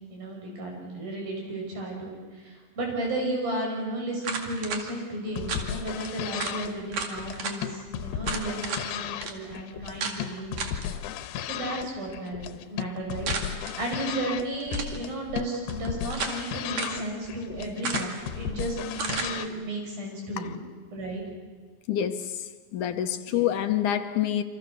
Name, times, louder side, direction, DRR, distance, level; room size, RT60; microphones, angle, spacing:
voice 1, 0.1-10.6 11.4-20.6 20.9-21.2 23.3-23.4, right 1 dB, 85° right, 8.4 m, -34 dB
sound 1, 4.2-4.8 5.5-5.7 6.1-6.2 6.4-6.6 6.9-7.6 8.2-8.9 9.2-9.3 10.0-10.2 10.6-10.9 13.3-13.7 14.6-15.0 15.7-16.4 16.8-17.0 17.8-18.3 19.0-19.3, right 4 dB, 55° right, 3.3 m, -32 dB
sound 2, 5.3-19.5, left 10 dB, 90° left, 2.7 m, -35 dB
voice 2, 21.9-22.4 22.7-24.4, left 10 dB, 70° left, 2.3 m, -27 dB
28.0 x 26.0 x 6.8 m
omnidirectional pair, 4.0 m